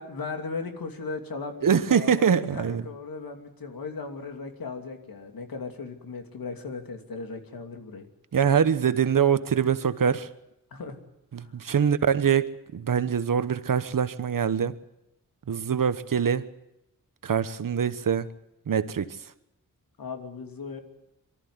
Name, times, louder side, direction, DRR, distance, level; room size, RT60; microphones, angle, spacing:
voice 1, 0.0-8.1 10.7-11.0 11.4-11.5 20.0-20.8, left 4 dB, 85° left, 5 dB, 2.8 m, -37 dB
voice 2, 1.6-2.8 8.3-10.3 11.3-14.8 15.5-16.5 17.2-18.3 18.7-19.3, right 7 dB, 70° right, 13 dB, 1.2 m, -24 dB
23.5 x 14.0 x 9.5 m, 0.88 s
wide cardioid pair, 85°, 34 cm